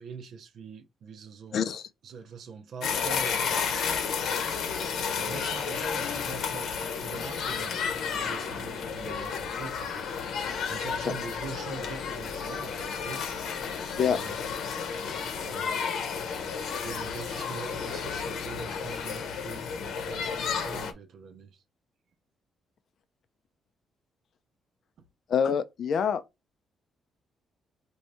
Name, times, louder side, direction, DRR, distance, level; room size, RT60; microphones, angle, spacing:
voice 1, 0.0-1.7 2.0-4.4 5.1-10.0 10.7-13.2 14.0-14.4 15.4-16.0 16.8-21.6, right 5 dB, 60° right, 0.6 m, -43 dB
voice 2, 1.5-1.9 10.6-10.8 14.0-14.2 25.3-26.2, left 7 dB, 50° left, 0.4 m, -26 dB
sound 1, 2.8-20.9, left 6 dB, 65° left, 0.8 m, -32 dB
4.3 x 2.7 x 4.7 m
cardioid pair, 155°, 0 cm